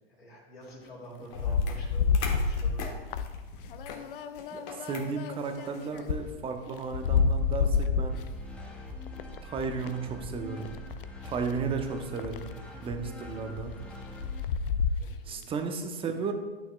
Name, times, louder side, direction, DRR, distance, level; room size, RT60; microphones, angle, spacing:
voice 1, 0.1-3.0 15.0-15.5, right 1 dB, 80° left, -5 dB, 2.5 m, -48 dB
sound 1, 1.3-6.3 6.7-8.2 9.1-9.9 10.6-11.0 11.5-11.6 12.2-12.5 13.9-14.0 14.2-15.1, left 5 dB, 60° left, 0.6 m, -29 dB
sound 2, 1.3-6.1, left 5 dB, 40° left, 1.4 m, -43 dB
voice 2, 4.5-8.2 9.4-10.7 11.2-12.5 12.8-13.8 15.2-16.3, right 5 dB, 20° right, 6 dB, 0.8 m, -34 dB
sound 3, 8.1-14.4, left 3 dB, 5° left, 1.0 m, -42 dB
11.5 x 6.3 x 2.4 m, 1.2 s
figure-of-eight pair, 105°, 30 cm